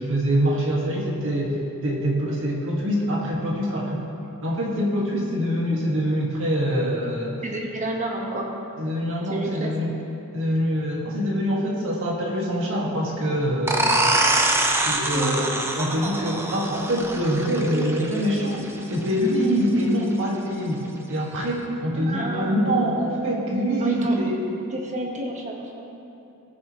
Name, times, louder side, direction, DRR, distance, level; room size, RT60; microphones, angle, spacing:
voice 1, 0.0-4.0 4.4-7.3 8.8-9.9 10.3-14.1 14.8-24.3, equal, 60° right, -3 dB, 2.0 m, -24 dB
voice 2, 7.4-8.5 9.3-9.7 15.1-15.4 22.0-22.7 23.8-24.2 24.7-25.9, right 1 dB, 35° right, -1 dB, 1.5 m, -30 dB
sound 1, 13.7-19.1, right 2 dB, 10° right, 0.7 m, -24 dB
18.5 x 7.2 x 3.2 m, 2.8 s
head